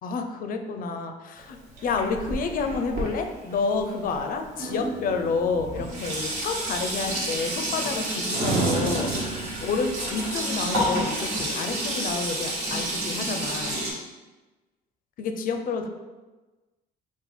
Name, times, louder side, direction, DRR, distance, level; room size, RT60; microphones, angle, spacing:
voice 1, 0.0-1.6 1.8-9.1 9.6-13.8 15.2-15.9, left 4 dB, 55° left, 6 dB, 0.5 m, -29 dB
Sink (filling or washing), 1.4-4.5 5.3-5.4 5.6-13.9, right 1 dB, 70° right, 1.4 m, -30 dB
sound 1, 4.6-8.0 8.3-11.0, right 3 dB, 35° right, 0.8 m, -33 dB
4.0 x 2.3 x 4.3 m, 1.2 s
cardioid pair, 110°, 17 cm